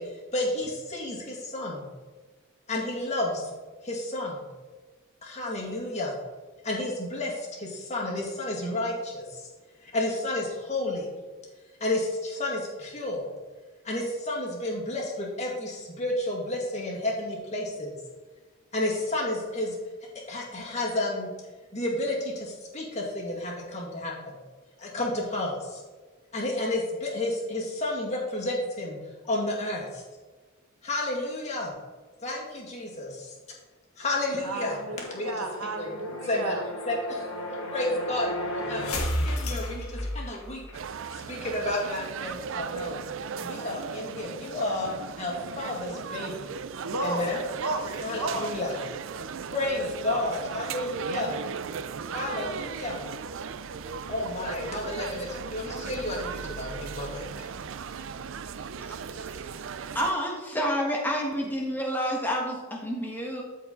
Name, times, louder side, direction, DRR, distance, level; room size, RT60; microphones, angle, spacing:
voice 1, 0.0-1.9 2.7-3.4 3.8-4.4 5.2-6.1 6.6-9.5 9.8-11.1 11.8-13.3 13.8-17.9 18.7-19.8 20.1-21.3 21.7-24.3 24.8-25.8 26.3-29.0 29.3-30.0 30.8-31.7 32.2-33.3 34.0-34.8 35.1-35.4 35.8-36.6 36.9-37.3 37.7-40.6 41.1-43.1 43.4-44.9 45.2-46.5 47.0-47.4 48.0-48.8 49.5-51.4 52.1-53.1 54.1-57.3, left 1 dB, 30° left, -3 dB, 2.0 m, -31 dB
sound 1, 34.0-40.8, left 1 dB, 90° left, 1.4 m, -34 dB
voice 2, 34.4-36.6 46.8-48.6, right 2 dB, 90° right, 4 dB, 1.3 m, -33 dB
sound 2, 40.7-60.1, right 6 dB, 65° right, 0.4 m, -37 dB
voice 3, 59.1-59.5 59.9-63.4, equal, 10° left, -1 dB, 1.5 m, -29 dB
13.0 x 4.7 x 3.8 m, 1.3 s
head